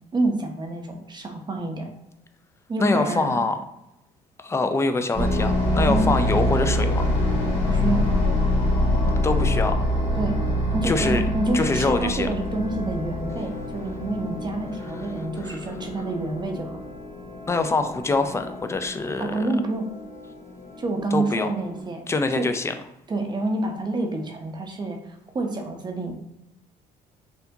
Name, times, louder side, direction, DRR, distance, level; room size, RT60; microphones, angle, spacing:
voice 1, 0.1-1.9 2.7-3.3 5.9-6.1 7.7-8.2 10.1-10.3 10.7-16.8 19.2-19.9 20.8-22.0 22.4-22.5 23.1-26.1, right 2 dB, 25° right, 3 dB, 0.7 m, -27 dB
voice 2, 2.8-3.6 4.4-7.1 9.2-9.8 10.8-11.2 11.5-12.3 17.5-19.3 21.1-21.5 22.1-22.7, left 3 dB, 15° left, 8 dB, 0.4 m, -24 dB
sound 1, 5.1-21.8, left 1 dB, 35° left, 1.5 m, -26 dB
4.4 x 2.7 x 2.7 m, 0.86 s
cardioid pair, 110°, 17 cm